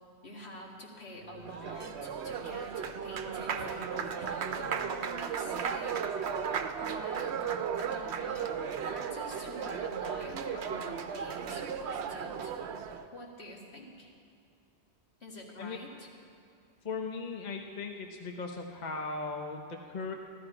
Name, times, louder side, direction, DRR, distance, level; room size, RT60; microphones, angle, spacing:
voice 1, 0.2-6.1 6.8-7.4 7.8-8.5 8.9-12.6 13.1-14.1 15.2-16.1, left 1 dB, 70° left, -2 dB, 2.2 m, -46 dB
Applause, 1.2-13.1, right 7 dB, 75° right, 0.9 m, -35 dB
voice 2, 16.8-20.1, left 4 dB, 45° left, 2 dB, 0.9 m, -38 dB
14.0 x 13.5 x 4.9 m, 2.4 s
omnidirectional pair, 1.1 m